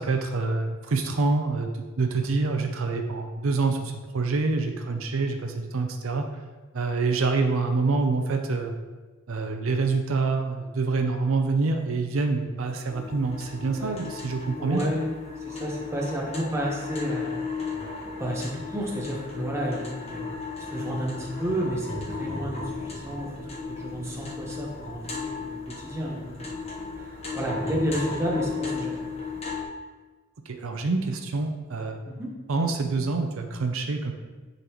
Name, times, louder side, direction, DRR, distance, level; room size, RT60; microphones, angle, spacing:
voice 1, 0.0-1.7 2.0-6.2 6.7-8.7 9.3-14.8 30.5-32.0 32.5-34.1, right 3 dB, 75° right, 5 dB, 0.6 m, -26 dB
sound 1, 12.9-29.6, left 4 dB, 30° left, 1.1 m, -35 dB
voice 2, 13.6-14.0 14.6-15.1 15.4-17.3 18.2-20.2 20.6-26.6 27.0-29.1 32.1-32.3, right 1 dB, 15° right, -3 dB, 1.1 m, -31 dB
9.7 x 3.9 x 3.0 m, 1.3 s
head